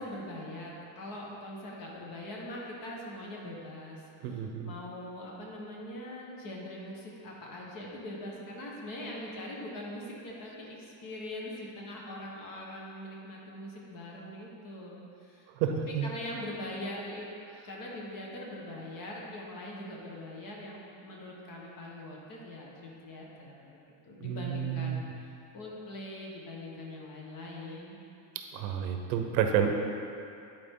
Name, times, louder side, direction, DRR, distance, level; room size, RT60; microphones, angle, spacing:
voice 1, 0.0-15.5 15.9-17.3 17.6-23.8 24.0-28.0, left 1 dB, 40° left, -2 dB, 1.4 m, -42 dB
voice 2, 4.2-4.7 15.6-16.1 24.2-25.1 28.3-29.7, right 8 dB, 90° right, 5 dB, 0.9 m, -30 dB
10.0 x 4.5 x 3.8 m, 2.6 s
cardioid pair, 150°, 49 cm